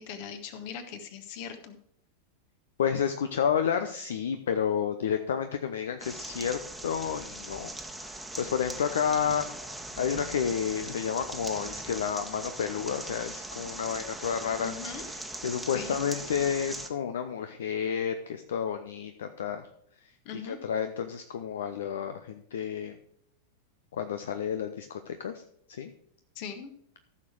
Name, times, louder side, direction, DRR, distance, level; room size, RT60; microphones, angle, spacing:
voice 1, 0.0-1.8 14.6-15.0 15.7-16.0 20.2-20.6 26.3-26.7, left 7 dB, 45° left, 8 dB, 1.6 m, -40 dB
voice 2, 2.8-7.7 8.0-14.7 15.1-19.6 20.0-20.1 20.4-22.9 23.9-25.4 25.7-25.9, left 7 dB, 60° left, 9 dB, 0.7 m, -31 dB
sound 1, 6.0-16.9, right 1 dB, 5° right, 1.3 m, -40 dB
14.5 x 6.6 x 4.7 m, 0.71 s
figure-of-eight pair, 90°, 0 cm